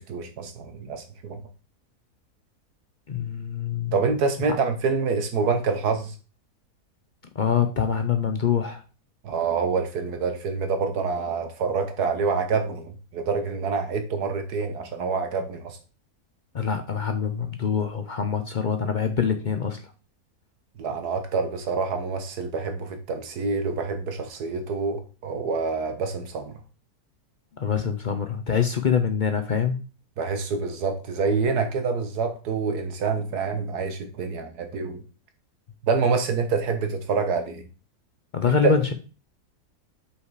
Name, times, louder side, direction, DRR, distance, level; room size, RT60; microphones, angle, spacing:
voice 1, 0.0-1.4 3.9-6.1 9.2-15.8 20.8-26.5 30.2-35.0 35.8-37.7 38.5-38.8, right 4 dB, 85° right, 1.7 m, -26 dB
voice 2, 3.1-3.9 7.4-8.8 16.5-19.8 27.6-29.8 38.3-38.9, left 7 dB, 55° left, 0.5 m, -25 dB
5.6 x 4.9 x 4.7 m
omnidirectional pair, 1.6 m